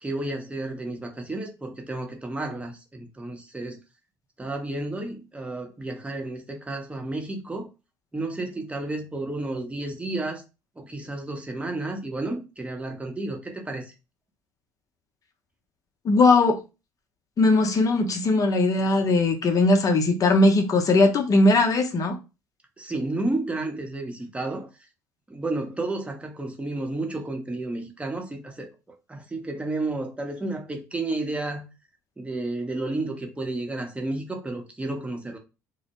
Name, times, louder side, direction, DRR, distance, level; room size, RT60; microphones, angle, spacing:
voice 1, 0.0-3.8 4.4-7.7 8.1-10.4 10.8-13.9 22.8-24.7 25.3-28.7 29.1-31.6 32.2-35.4, right 2 dB, 15° right, 0.8 m, -31 dB
voice 2, 16.0-16.6 17.4-22.2, left 2 dB, 40° left, 0.7 m, -19 dB
2.1 x 2.0 x 2.9 m
hypercardioid pair, 65°, 10 cm